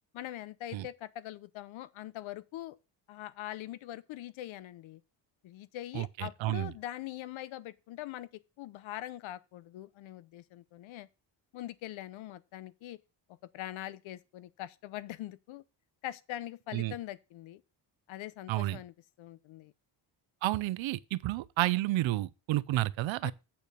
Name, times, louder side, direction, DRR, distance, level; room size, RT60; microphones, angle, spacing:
voice 1, 0.1-2.8 3.1-5.0 5.4-11.1 11.5-13.0 13.5-15.6 16.0-17.6 18.1-19.7 23.2-23.3, left 14 dB, 85° left, 0.8 m, -43 dB
voice 2, 5.9-6.7 16.7-16.9 18.5-18.8 20.4-23.3, right 16 dB, 80° right, 0.6 m, -31 dB
8.6 x 4.5 x 6.7 m
cardioid pair, 150°, 46 cm